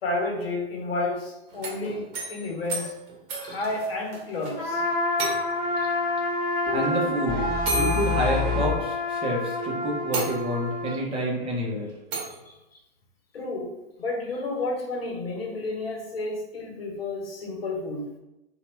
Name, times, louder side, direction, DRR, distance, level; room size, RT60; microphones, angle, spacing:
voice 1, 0.0-3.0 3.3-4.8 5.7-5.9 12.5-12.6 13.3-18.2, left 2 dB, 70° left, 0 dB, 0.9 m, -31 dB
sound 1, 1.5-4.5 4.8-4.9 5.2-5.8 6.8-6.9 7.6-9.1 9.6-9.7 10.1-10.8 12.1-12.4, right 3 dB, 40° right, 1.0 m, -33 dB
Trumpet, 4.6-11.0, left 2 dB, 35° left, 1.1 m, -29 dB
sound 2, 6.7-8.8, left 4 dB, 15° left, 0.9 m, -27 dB
voice 2, 6.7-11.9, right 1 dB, 15° right, -4 dB, 0.7 m, -28 dB
2.7 x 2.3 x 3.0 m, 0.92 s
figure-of-eight pair, 110°, 31 cm